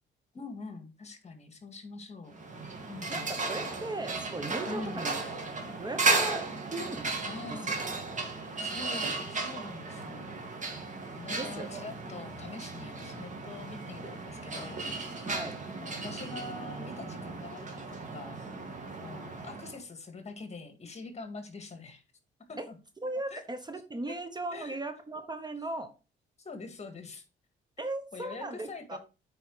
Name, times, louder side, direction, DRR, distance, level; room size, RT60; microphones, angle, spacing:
voice 1, 0.3-2.5 2.9-3.3 4.7-5.1 7.2-7.8 8.6-10.4 11.1-14.8 15.8-18.4 19.0-22.0 22.5-22.8 23.3-23.4 24.1-24.2 24.5-24.8 26.4-27.2 28.1-29.0, left 3 dB, 35° left, 7 dB, 2.0 m, -44 dB
sound 1, 2.3-19.8, right 3 dB, 40° right, 2.4 m, -35 dB
voice 2, 3.1-5.1 5.8-7.1 7.5-7.8 11.4-11.7 15.2-15.6 16.9-17.0 22.6-22.7 23.0-25.9 27.8-29.0, right 2 dB, 20° right, 9 dB, 1.1 m, -37 dB
8.7 x 5.0 x 4.8 m, 0.32 s
cardioid pair, 90°, 20 cm